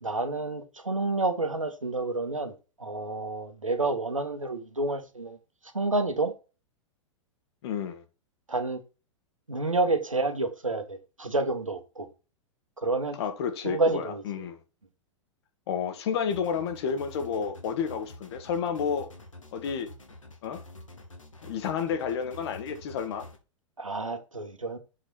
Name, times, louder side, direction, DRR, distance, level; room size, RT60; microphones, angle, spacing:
voice 1, 0.0-5.4 5.7-6.3 8.5-8.8 9.5-12.1 12.8-13.2 13.6-14.4 23.8-24.8, right 2 dB, 90° right, 1.6 m, -29 dB
voice 2, 7.6-8.0 13.2-14.6 15.7-19.1 19.5-19.9 20.4-20.6 21.4-23.3, left 7 dB, 55° left, 1.7 m, -30 dB
sound 1, 16.3-23.4, left 2 dB, 80° left, 2.1 m, -48 dB
7.6 x 5.0 x 4.2 m
figure-of-eight pair, 100°, 16 cm